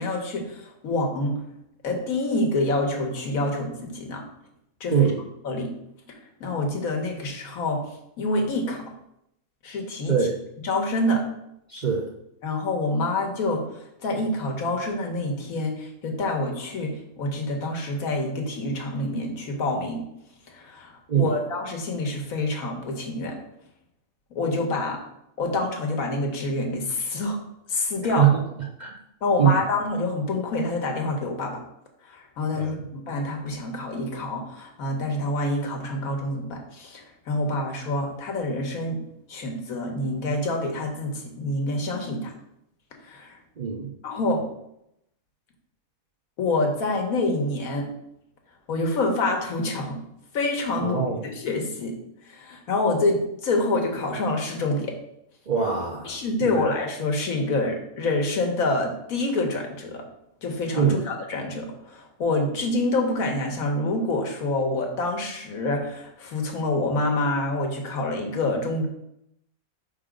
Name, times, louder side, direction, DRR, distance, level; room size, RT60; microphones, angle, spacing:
voice 1, 0.0-1.4 1.8-4.2 4.8-5.1 5.4-5.7 6.4-7.8 8.2-8.8 9.6-10.2 10.6-11.3 12.4-20.0 20.5-23.4 24.3-25.0 25.4-27.4 27.7-28.2 29.2-31.6 32.1-39.0 39.3-42.3 43.0-43.4 44.0-44.4 46.4-47.9 48.7-50.0 50.3-51.1 51.4-51.9 52.3-55.0 56.0-60.0 60.4-68.9, left 2 dB, 80° left, 2 dB, 1.5 m, -27 dB
voice 2, 4.9-5.2 10.1-10.4 11.7-12.1 21.1-21.4 28.2-28.4 28.8-29.0 29.4-29.6 32.5-32.7 43.6-43.9 50.8-51.2 55.5-56.7 60.7-61.0, right 8 dB, 45° right, -2 dB, 0.6 m, -23 dB
4.9 x 3.8 x 5.0 m, 0.79 s
omnidirectional pair, 1.5 m